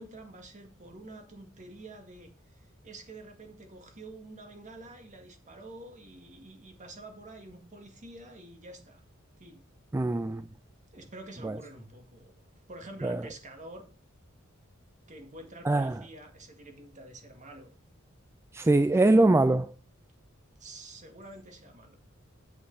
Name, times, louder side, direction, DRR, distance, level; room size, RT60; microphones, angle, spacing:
voice 1, 0.0-9.0 9.4-9.6 10.9-12.3 12.7-13.9 15.1-17.7 20.6-22.0, right 2 dB, 35° right, 1.8 m, -48 dB
voice 2, 9.9-10.4 11.4-11.6 13.0-13.2 15.7-16.0 18.5-19.7, right 2 dB, 10° right, 0.3 m, -23 dB
8.2 x 7.6 x 3.9 m
head